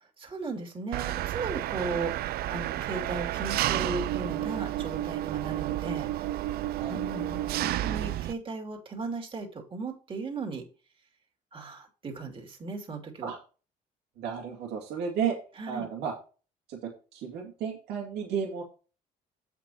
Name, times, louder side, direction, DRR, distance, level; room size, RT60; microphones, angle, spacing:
voice 1, 0.2-6.6 6.9-10.6 11.5-13.3 15.6-15.9, right 3 dB, 30° right, 2 dB, 2.7 m, -36 dB
Engine, 0.9-8.3, right 14 dB, 65° right, 0.4 m, -31 dB
voice 2, 14.2-15.4 15.7-16.1 16.7-18.6, right 7 dB, 90° right, -1 dB, 2.2 m, -33 dB
7.9 x 6.0 x 4.4 m, 0.35 s
cardioid pair, 110°, 17 cm